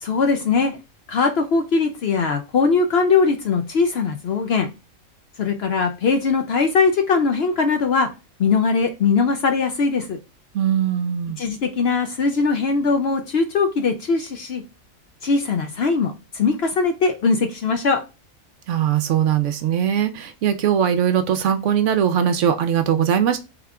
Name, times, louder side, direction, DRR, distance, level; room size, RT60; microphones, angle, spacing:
voice 1, 0.0-0.8 1.1-4.7 5.4-8.1 8.4-10.2 11.4-14.6 15.2-18.0, left 4 dB, 60° left, 5 dB, 0.7 m, -20 dB
voice 2, 10.5-11.4 18.7-23.4, right 9 dB, 70° right, 8 dB, 0.8 m, -20 dB
3.5 x 3.4 x 3.7 m, 0.28 s
omnidirectional pair, 1.4 m